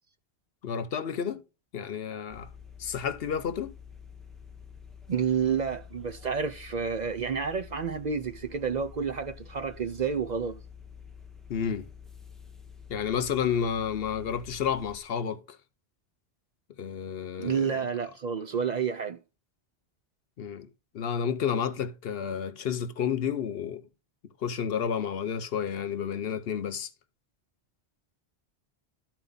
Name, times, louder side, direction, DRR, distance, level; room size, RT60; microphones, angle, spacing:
voice 1, 0.6-1.4 1.7-2.5 2.8-3.8 11.5-11.9 12.9-15.6 16.8-17.9 20.4-20.7 20.9-23.8 24.4-26.9, left 7 dB, 65° left, 0.9 m, -31 dB
sound 1, 2.3-15.0, left 7 dB, ahead, 0.8 m, -48 dB
voice 2, 5.1-10.6 17.4-19.2, right 6 dB, 50° right, 0.6 m, -30 dB
12.5 x 4.5 x 3.9 m
omnidirectional pair, 1.1 m